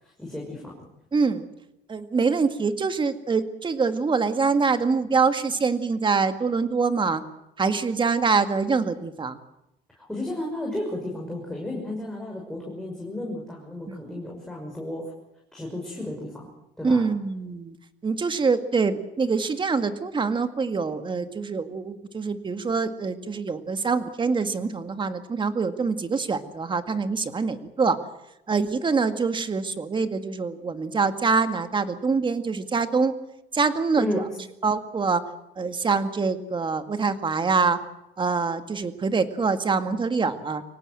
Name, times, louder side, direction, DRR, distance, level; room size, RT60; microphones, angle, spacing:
voice 1, 0.0-0.7 10.0-15.0 15.5-16.5 16.8-17.0 34.0-34.3, left 1 dB, 5° left, -2 dB, 6.1 m, -33 dB
voice 2, 1.1-1.5 1.9-7.2 7.6-9.4 13.9-14.0 16.8-17.8 18.0-28.0 28.5-33.2 33.5-34.1 34.6-35.2 35.6-37.8 38.2-40.6, right 4 dB, 30° right, 9 dB, 2.0 m, -25 dB
24.0 x 18.5 x 7.9 m, 0.88 s
cardioid pair, 110°, 17 cm